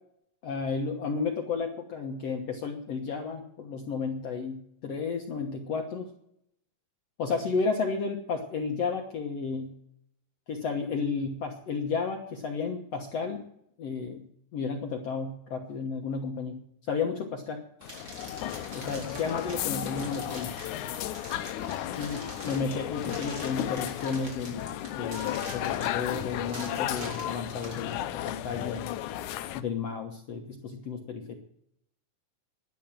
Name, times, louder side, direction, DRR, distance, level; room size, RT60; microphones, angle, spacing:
voice 1, 0.4-6.1 7.2-9.7 10.5-13.4 13.8-14.3 14.5-16.6 16.9-17.6 18.7-20.6 21.5-28.9 29.5-31.3, left 5 dB, 60° left, 3 dB, 1.9 m, -32 dB
sound 1, 17.8-29.6, left 12 dB, 75° left, 1.9 m, -34 dB
sound 2, 17.8-27.8, right 1 dB, 30° right, 4.5 m, -45 dB
12.0 x 11.0 x 7.5 m, 0.74 s
omnidirectional pair, 4.0 m